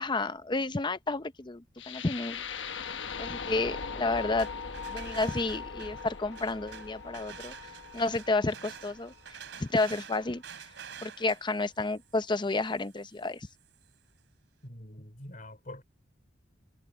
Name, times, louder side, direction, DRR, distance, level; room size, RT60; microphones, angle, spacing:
voice 1, 0.0-2.4 3.2-4.5 4.9-7.5 7.9-10.4 11.0-13.5, left 3 dB, 25° left, 0.7 m, -31 dB
sound 1, 1.8-9.8, left 5 dB, 70° left, 1.2 m, -40 dB
sound 2, 4.1-13.9, right 7 dB, 75° right, 3.3 m, -49 dB
voice 2, 14.6-15.8, left 1 dB, 45° left, 4.5 m, -45 dB
head